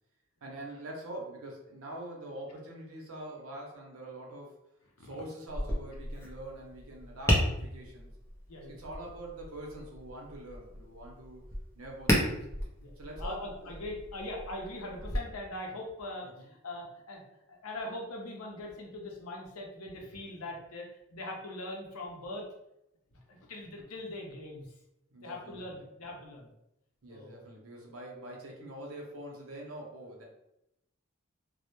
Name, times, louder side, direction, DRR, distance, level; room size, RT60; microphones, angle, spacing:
voice 1, 0.4-4.6 5.0-8.1 8.7-12.5 13.0-13.7 16.2-16.5 25.1-25.9 27.0-30.2, right 1 dB, 75° right, -1 dB, 0.7 m, -44 dB
Tap, 5.5-15.2, equal, 10° left, 0.4 m, -34 dB
voice 2, 13.2-17.2 17.5-22.5 23.3-24.7 25.2-26.5 27.1-27.4, left 1 dB, 90° left, 0 dB, 0.6 m, -41 dB
2.1 x 2.1 x 2.9 m, 0.85 s
head